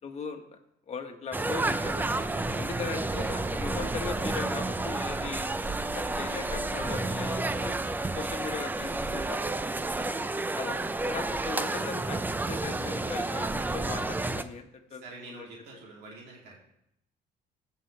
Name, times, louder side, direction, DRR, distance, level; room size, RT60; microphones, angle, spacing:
voice 1, 0.0-0.5 0.9-2.2 2.5-5.5 5.9-9.4 10.6-12.2 12.5-15.5, left 5 dB, 40° left, 5 dB, 1.3 m, -39 dB
sound 1, 1.3-14.4, right 2 dB, 10° right, 0.5 m, -31 dB
voice 2, 2.5-2.8 9.9-10.3 15.0-16.7, right 3 dB, 75° right, -3 dB, 2.8 m, -48 dB
16.0 x 5.6 x 3.3 m, 0.78 s
cardioid pair, 110°, 17 cm